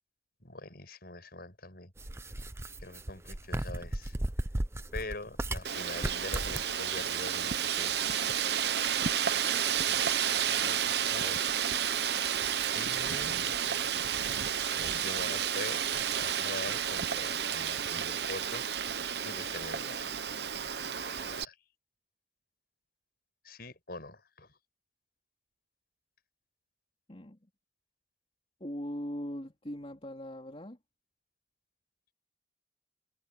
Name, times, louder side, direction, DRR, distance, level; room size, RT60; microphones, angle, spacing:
voice 1, 0.4-1.9 2.8-4.1 4.9-8.4 9.4-11.5 12.7-13.5 14.7-18.9 19.2-21.6 23.4-24.5, left 2 dB, 55° left, 6.3 m, -44 dB
sound 1, 2.0-5.7 6.0-6.7, right 1 dB, 15° right, 0.6 m, -35 dB
Wind, 5.6-21.4, right 8 dB, 60° right, 1.0 m, -31 dB
voice 2, 28.6-30.8, equal, 30° left, 3.5 m, -40 dB
head